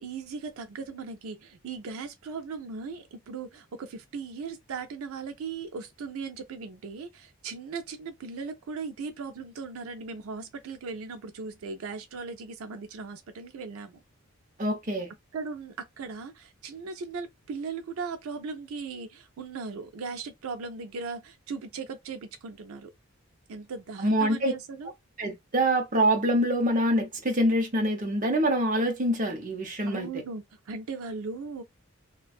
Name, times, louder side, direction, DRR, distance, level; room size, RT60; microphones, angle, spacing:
voice 1, 0.0-14.0 15.3-22.9 23.5-24.9 29.9-31.6, right 4 dB, 85° right, 0.4 m, -38 dB
voice 2, 14.6-15.1 24.0-24.5 25.2-30.1, right 1 dB, 40° right, 0.7 m, -25 dB
2.5 x 2.3 x 2.3 m
head